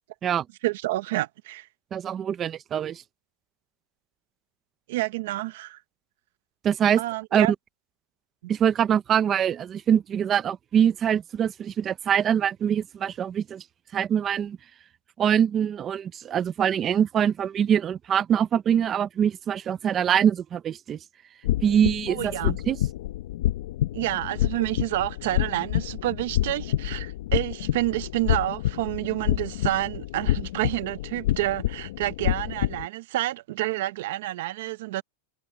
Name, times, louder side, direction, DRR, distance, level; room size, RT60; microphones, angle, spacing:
voice 1, 0.6-1.7 4.9-5.8 7.0-7.5 22.1-22.6 23.9-35.0, right 17 dB, 55° right, 0.8 m, -29 dB
voice 2, 1.9-3.0 6.6-7.0 7.3-7.5 8.5-13.6 13.9-14.6 15.2-21.0 21.6-22.8, right 9 dB, 20° right, 0.5 m, -24 dB
sound 1, 21.4-32.9, left 13 dB, 60° left, 0.9 m, -28 dB
supercardioid pair, 175°, 0 cm